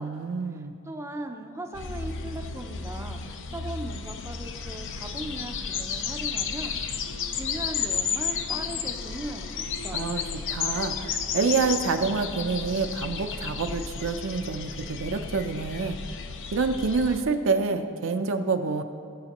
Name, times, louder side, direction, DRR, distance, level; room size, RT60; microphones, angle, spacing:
voice 1, 0.0-0.7 9.9-16.0 16.5-18.8, right 4 dB, 60° right, 7 dB, 0.6 m, -27 dB
voice 2, 0.5-6.8 7.3-10.1, right 1 dB, 10° right, 4 dB, 0.5 m, -39 dB
sound 1, 1.7-17.2, left 6 dB, 60° left, 0.6 m, -33 dB
18.5 x 7.9 x 2.9 m, 2.3 s
head